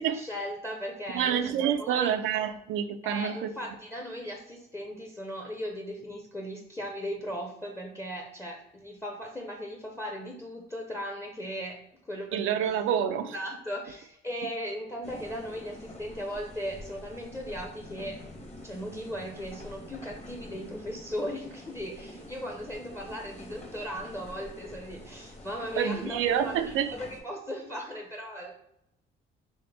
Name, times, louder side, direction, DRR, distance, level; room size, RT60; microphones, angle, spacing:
voice 1, 0.0-2.1 3.0-12.7 13.2-18.3 18.6-28.5, equal, 15° left, 0.6 m, -37 dB
voice 2, 1.1-3.5 12.3-13.3 25.7-26.9, right 9 dB, 85° right, 0.4 m, -28 dB
sound 1, 15.0-27.2, left 1 dB, 30° left, 1.1 m, -46 dB
4.2 x 3.2 x 3.3 m
cardioid pair, 90°, 20 cm